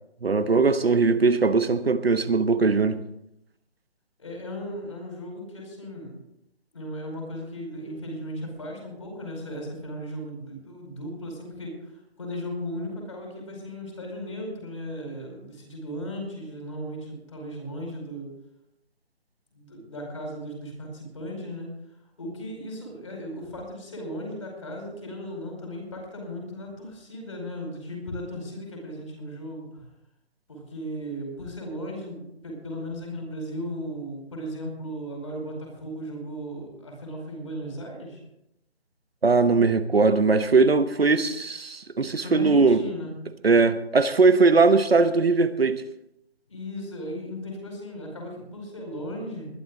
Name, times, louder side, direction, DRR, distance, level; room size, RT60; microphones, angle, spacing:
voice 1, 0.2-3.0 39.2-42.8 43.4-45.8, right 4 dB, 65° right, 1.2 m, -20 dB
voice 2, 4.2-6.2 6.7-18.3 19.5-21.7 22.2-29.8 30.5-38.2 42.2-43.1 46.5-49.5, equal, 30° left, 5.0 m, -36 dB
20.5 x 11.5 x 3.8 m
figure-of-eight pair, 180°, 33 cm